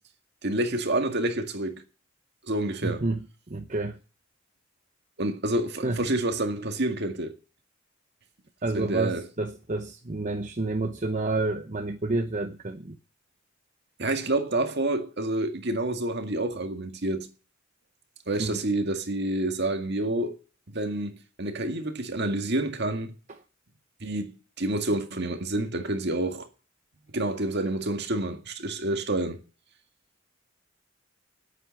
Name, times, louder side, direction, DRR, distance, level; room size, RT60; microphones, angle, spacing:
voice 1, 0.4-1.8 2.5-3.0 5.2-7.3 8.7-9.2 14.0-17.3 18.3-20.4 20.7-23.1 24.0-26.5 27.1-29.4, right 1 dB, 55° right, 2.0 m, -28 dB
voice 2, 2.8-4.0 5.8-6.0 8.6-13.0 18.4-18.6 23.3-23.4, right 2 dB, 40° right, 0.9 m, -29 dB
9.7 x 9.0 x 9.5 m
head